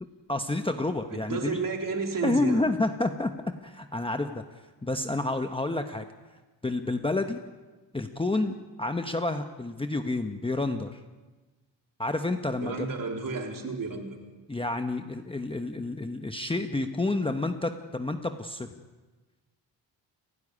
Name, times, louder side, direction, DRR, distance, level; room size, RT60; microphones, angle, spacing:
voice 1, 0.3-1.6 2.2-3.3 3.6-4.4 4.8-6.0 6.6-7.4 7.9-11.0 12.0-12.9 14.5-18.7, left 2 dB, 10° left, 6 dB, 0.9 m, -29 dB
voice 2, 1.1-2.7 12.6-14.1, right 4 dB, 45° right, 1 dB, 3.6 m, -32 dB
29.5 x 10.5 x 9.9 m, 1.2 s
cardioid pair, 125°, 44 cm